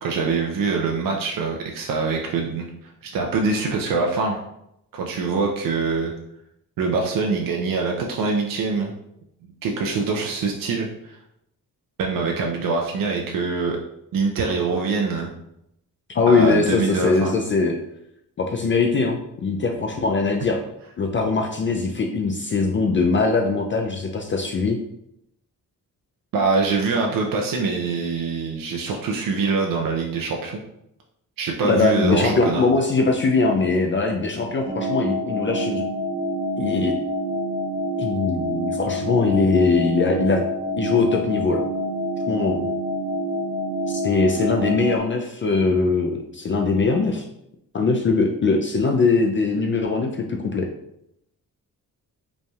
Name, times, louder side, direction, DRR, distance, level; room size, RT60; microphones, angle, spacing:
voice 1, 0.0-4.4 4.9-6.1 6.8-9.0 9.6-11.2 12.0-13.8 14.1-15.3 16.3-17.4 26.3-30.6 31.4-32.6, right 4 dB, 75° right, 1 dB, 0.6 m, -24 dB
voice 2, 16.1-17.7 18.4-20.6 21.0-24.8 31.6-35.8 36.6-37.0 38.0-40.4 40.8-41.6 42.3-42.7 43.9-47.2 47.7-50.7, left 4 dB, 35° left, 2 dB, 0.4 m, -21 dB
sound 1, 34.7-45.0, equal, 20° right, 1.0 m, -27 dB
5.1 x 3.3 x 2.4 m, 0.79 s
cardioid pair, 145°, 34 cm